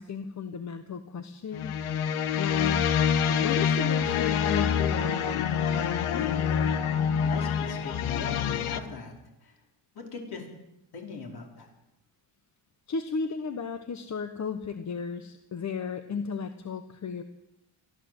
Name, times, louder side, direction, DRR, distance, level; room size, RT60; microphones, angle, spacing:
voice 1, 0.0-1.8 2.1-2.8 3.3-5.5 12.9-17.2, left 5 dB, 35° left, 9 dB, 1.1 m, -34 dB
sound 1, 1.5-8.8, left 8 dB, 85° left, 1.6 m, -26 dB
voice 2, 6.1-6.6 6.9-9.2 9.4-9.6 10.0-10.5 10.9-11.7, left 4 dB, 50° left, 2 dB, 5.2 m, -40 dB
23.0 x 14.5 x 8.0 m, 0.92 s
cardioid pair, 140°, 48 cm